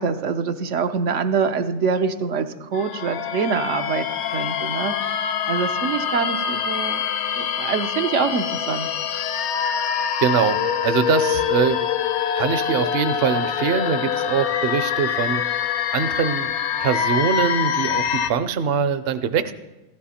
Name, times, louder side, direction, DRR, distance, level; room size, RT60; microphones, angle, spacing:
voice 1, 0.0-4.0 4.3-7.0 7.3-8.9, right 5 dB, 85° right, 7 dB, 1.2 m, -25 dB
sound 1, 2.7-18.3, left 8 dB, 75° left, 0.9 m, -25 dB
voice 2, 10.2-11.8 12.4-15.6 15.9-16.5 16.8-19.5, right 7 dB, 60° right, 12 dB, 0.8 m, -23 dB
15.0 x 13.0 x 4.3 m, 1.1 s
omnidirectional pair, 1.2 m